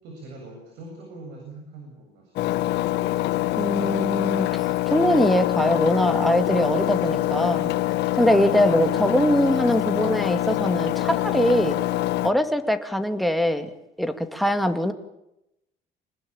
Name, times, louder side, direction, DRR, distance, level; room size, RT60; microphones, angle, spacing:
voice 1, 0.0-2.9, right 2 dB, 90° right, 2 dB, 7.6 m, -43 dB
Engine, 2.4-12.3, left 15 dB, 90° left, 1.5 m, -25 dB
voice 2, 3.6-7.7 8.1-11.8 12.2-13.7 14.0-14.9, equal, ahead, 7 dB, 2.4 m, -22 dB
26.5 x 20.0 x 8.9 m, 0.85 s
cardioid pair, 110°, 17 cm